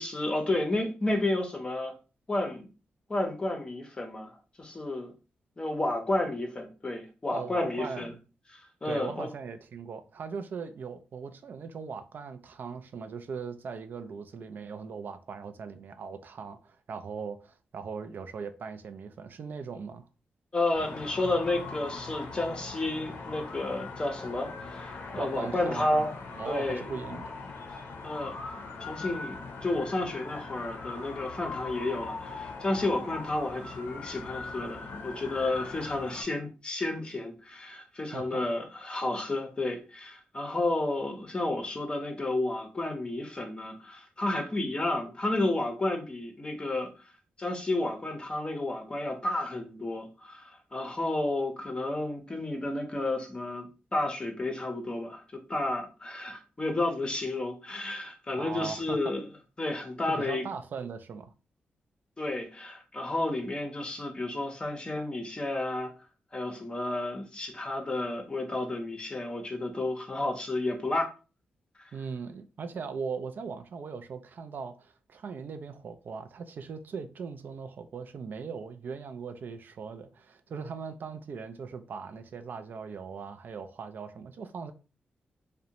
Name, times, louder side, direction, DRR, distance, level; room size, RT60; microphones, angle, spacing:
voice 1, 0.0-1.9 2.3-2.7 3.1-5.1 5.6-8.1 8.5-9.3 20.5-26.1 26.5-26.9 28.0-28.4 28.8-46.9 47.4-59.2 59.6-60.5 62.2-65.9 66.3-71.1 71.8-71.9, left 2 dB, 25° left, 0.6 m, -31 dB
voice 2, 7.3-8.2 8.8-20.0 25.2-26.1 26.4-27.4 38.1-38.4 58.3-59.1 60.1-61.3 71.9-84.7, right 5 dB, 60° right, 0.3 m, -39 dB
sound 1, 20.7-36.2, left 4 dB, 70° left, 0.6 m, -41 dB
2.5 x 2.1 x 2.8 m
cardioid pair, 95°, 4 cm